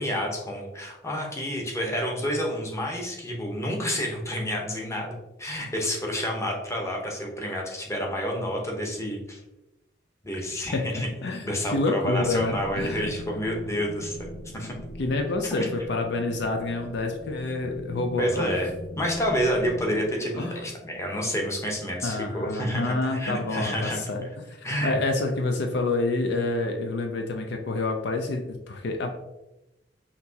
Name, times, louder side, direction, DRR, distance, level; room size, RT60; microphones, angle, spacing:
voice 1, 0.0-9.4 10.2-11.1 11.4-14.8 15.5-15.7 18.2-18.7 19.0-24.0 24.6-25.0, equal, 15° left, 0 dB, 0.9 m, -29 dB
voice 2, 10.5-13.1 15.0-18.5 20.4-20.6 22.0-24.3 24.6-29.1, left 2 dB, 65° left, 4 dB, 0.5 m, -28 dB
sound 1, 12.1-20.0, left 1 dB, 80° left, 1.5 m, -41 dB
5.8 x 2.8 x 2.8 m, 0.94 s
head